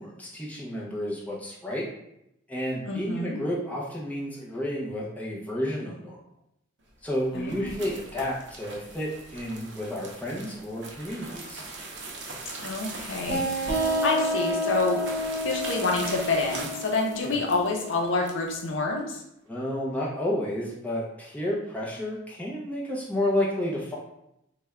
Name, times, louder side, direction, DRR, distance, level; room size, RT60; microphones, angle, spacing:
voice 1, 0.0-1.9 2.5-6.2 7.0-11.6 17.2-17.4 19.5-23.9, left 1 dB, 10° left, -5 dB, 0.6 m, -31 dB
voice 2, 2.8-3.5 7.3-7.9 12.6-15.0 15.4-19.2, left 3 dB, 75° left, 1 dB, 0.6 m, -28 dB
sound 1, 6.9-18.7, right 3 dB, 60° right, 0.6 m, -41 dB
sound 2, 13.3-18.6, equal, 15° right, 1.1 m, -30 dB
3.2 x 2.2 x 3.5 m, 0.82 s
head